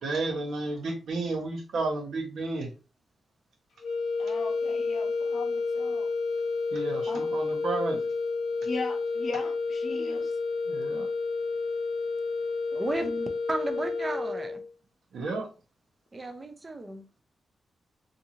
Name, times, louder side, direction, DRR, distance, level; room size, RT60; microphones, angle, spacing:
voice 1, 0.0-2.7 6.7-8.0 10.7-11.1 15.1-15.5, right 3 dB, 85° right, 0.9 m, -32 dB
sound 1, 3.8-14.7, left 4 dB, 90° left, 0.7 m, -30 dB
voice 2, 4.2-6.1 7.1-7.3 8.6-10.3 13.0-13.3, left 3 dB, 50° left, 0.6 m, -38 dB
voice 3, 12.7-13.1 13.5-14.6 16.1-17.2, right 2 dB, 20° right, 0.4 m, -34 dB
2.6 x 2.5 x 2.8 m
wide cardioid pair, 160°, 0 cm